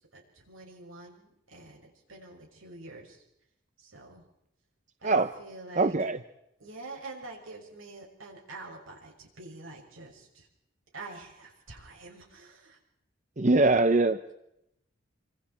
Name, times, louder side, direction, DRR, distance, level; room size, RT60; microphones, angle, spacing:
voice 1, 0.1-3.2 3.8-4.2 5.0-5.9 6.6-10.5 10.9-12.8, right 2 dB, 85° right, 1 dB, 6.4 m, -46 dB
voice 2, 5.8-6.2 13.4-14.2, right 3 dB, 35° right, 9 dB, 0.8 m, -22 dB
28.5 x 25.5 x 4.4 m, 0.80 s
head